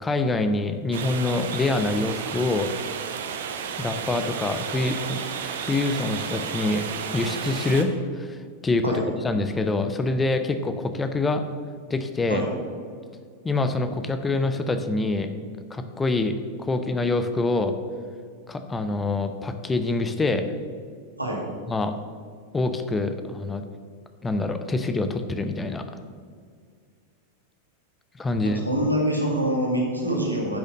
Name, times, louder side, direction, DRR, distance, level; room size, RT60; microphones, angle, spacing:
voice 1, 0.0-2.7 3.8-6.8 7.1-8.4 8.6-11.4 11.9-12.5 13.4-15.3 15.7-17.7 18.5-20.5 21.7-21.9 22.5-23.6 24.2-25.8 28.2-28.6, left 2 dB, 15° left, 8 dB, 0.7 m, -25 dB
sound 1, 0.9-7.8, right 7 dB, 60° right, 0.9 m, -32 dB
voice 2, 28.4-30.6, right 1 dB, 85° right, -1 dB, 2.2 m, -25 dB
10.0 x 6.5 x 6.3 m, 2.1 s
figure-of-eight pair, 90°, 0 cm